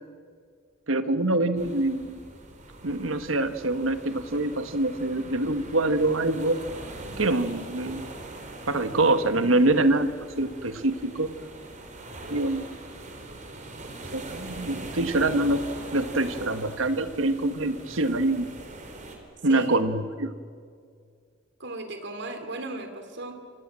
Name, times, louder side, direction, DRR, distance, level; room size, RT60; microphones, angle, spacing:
voice 1, 0.9-2.2 2.8-6.6 7.2-8.1 8.7-11.3 12.3-12.7 14.1-15.6 15.9-18.4 19.4-20.3, right 2 dB, 85° right, 10 dB, 1.5 m, -25 dB
sound 1, 1.6-19.2, right 2 dB, 40° right, 4.3 m, -42 dB
voice 2, 19.5-19.9 21.6-23.4, right 2 dB, 60° right, 7 dB, 3.5 m, -35 dB
27.5 x 25.5 x 7.6 m, 2.2 s
head